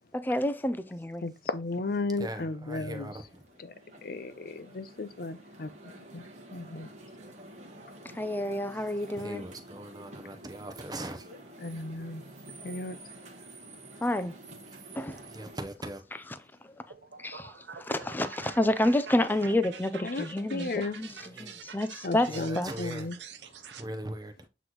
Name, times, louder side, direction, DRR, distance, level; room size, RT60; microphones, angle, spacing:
voice 1, 0.1-1.2 8.2-9.4 14.0-14.3 14.9-15.2 17.2-17.5 17.8-22.3 22.6-22.7, left 1 dB, 10° left, 0.4 m, -29 dB
voice 2, 1.2-3.1 4.0-6.2 6.5-6.9 11.6-12.2 12.6-13.0 20.0-21.0 22.0-23.1, left 3 dB, 55° left, 0.6 m, -34 dB
voice 3, 2.2-3.5 8.7-8.8 9.1-11.3 12.4-12.5 14.7-14.8 15.2-16.3 21.2-21.7 22.2-23.4 23.7-24.5, right 1 dB, 20° right, 0.8 m, -41 dB
sound 1, 3.1-15.6, right 1 dB, 40° right, 1.1 m, -49 dB
sound 2, 16.9-23.8, right 6 dB, 75° right, 0.7 m, -46 dB
7.9 x 3.1 x 3.8 m
head